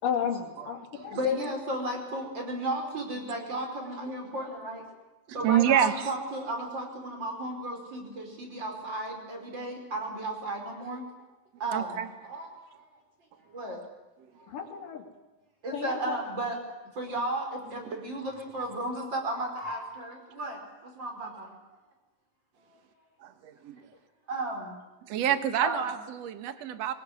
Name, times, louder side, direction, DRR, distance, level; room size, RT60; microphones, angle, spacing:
voice 1, 0.0-1.5 14.5-15.0 15.7-16.2, left 7 dB, 65° left, 2 dB, 4.2 m, -32 dB
voice 2, 1.1-4.8 5.3-11.1 11.6-12.9 13.5-13.8 14.4-14.5 15.6-16.6 17.0-21.6 24.3-24.7 25.6-25.9, right 1 dB, 30° right, 3 dB, 5.4 m, -34 dB
voice 3, 5.3-6.1 11.7-12.1 13.6-13.8 23.2-23.8 25.1-26.9, right 11 dB, 55° right, 10 dB, 2.2 m, -27 dB
23.5 x 18.5 x 9.7 m, 1.1 s
omnidirectional pair, 4.1 m